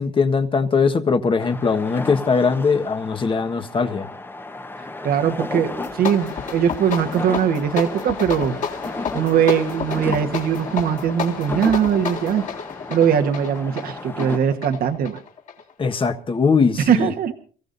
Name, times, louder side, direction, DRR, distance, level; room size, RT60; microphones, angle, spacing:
voice 1, 0.0-4.1 15.8-17.1, left 5 dB, 30° left, 1.5 m, -20 dB
sound 1, 1.4-14.4, left 2 dB, 10° left, 1.1 m, -34 dB
voice 2, 5.0-8.6 9.1-12.4 12.9-15.2 16.8-17.3, right 8 dB, 60° right, 1.4 m, -20 dB
sound 2, 5.7-16.0, left 6 dB, 50° left, 3.5 m, -31 dB
29.5 x 15.5 x 2.7 m
cardioid pair, 110°, 17 cm